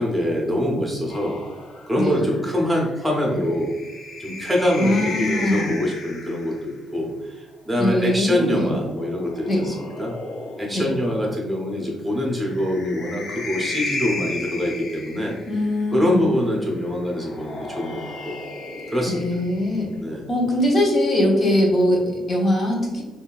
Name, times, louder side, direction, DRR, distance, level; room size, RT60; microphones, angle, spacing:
voice 1, 0.0-1.4 1.9-3.7 4.2-10.1 10.6-15.4 15.9-18.4 18.9-19.3 20.0-20.2, left 1 dB, 5° right, -1 dB, 1.0 m, -24 dB
sound 1, 1.1-6.6 8.0-11.0 12.3-15.8 17.1-20.0, left 2 dB, 65° left, 0.8 m, -35 dB
voice 2, 4.8-5.7 7.8-8.8 9.5-9.7 10.7-10.9 15.5-16.3 19.1-19.9 20.3-23.0, left 1 dB, 40° left, 0 dB, 1.0 m, -21 dB
3.6 x 2.6 x 2.4 m, 1.2 s
cardioid pair, 90°, 0 cm